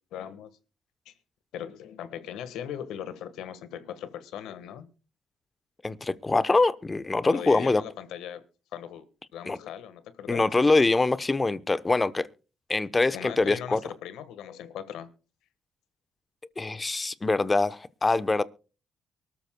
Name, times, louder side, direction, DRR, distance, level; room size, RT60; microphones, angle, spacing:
voice 1, 0.1-0.5 1.0-1.1 1.5-4.9 7.2-8.4 8.7-9.1 9.3-10.4 13.1-15.1, left 9 dB, 90° left, 1.4 m, -39 dB
voice 2, 5.8-7.8 9.5-9.6 10.3-12.3 12.7-13.8 16.6-18.4, left 3 dB, 20° left, 0.8 m, -24 dB
23.5 x 13.5 x 2.2 m
cardioid pair, 90°, 0 cm